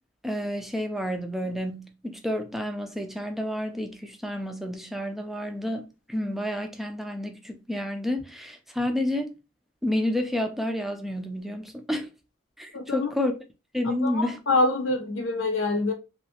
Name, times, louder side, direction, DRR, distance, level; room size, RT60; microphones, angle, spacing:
voice 1, 0.2-9.3 9.8-12.1 12.6-13.3 13.7-14.4, left 1 dB, ahead, 0.4 m, -30 dB
voice 2, 12.7-13.1 14.0-15.9, left 2 dB, 85° left, 0.7 m, -25 dB
3.0 x 2.6 x 2.8 m
head